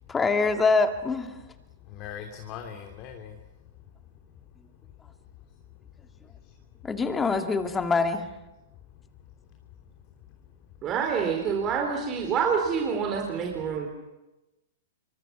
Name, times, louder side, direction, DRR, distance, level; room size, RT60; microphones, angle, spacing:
voice 1, 0.1-1.4 6.8-8.3, left 4 dB, 15° left, 6 dB, 2.3 m, -24 dB
voice 2, 1.8-3.4 3.6-4.8 5.4-6.9 8.7-9.4 9.9-10.0 10.4-10.7 12.2-12.3, left 8 dB, 40° left, 3 dB, 3.1 m, -45 dB
voice 3, 10.8-13.9, right 6 dB, 30° right, 2 dB, 4.2 m, -27 dB
28.0 x 25.0 x 6.2 m, 1.0 s
hypercardioid pair, 110°, 0 cm